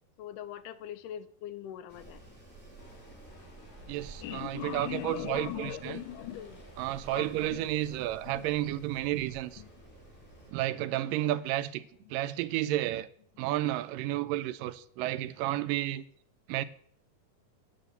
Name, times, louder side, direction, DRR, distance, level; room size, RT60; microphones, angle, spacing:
voice 1, 0.2-2.2 4.2-6.6 7.1-7.7 8.3-8.5 9.6-9.7, left 12 dB, 80° left, 2.2 m, -40 dB
Wind, 1.9-10.5, right 3 dB, 5° left, 2.7 m, -52 dB
sound 1, 2.8-11.2, left 3 dB, 60° left, 3.8 m, -58 dB
voice 2, 3.9-6.0 6.8-9.6 10.5-11.8 12.1-13.1 13.4-16.0 16.5-16.6, right 14 dB, 85° right, 2.2 m, -31 dB
9.2 x 6.8 x 7.9 m
omnidirectional pair, 3.9 m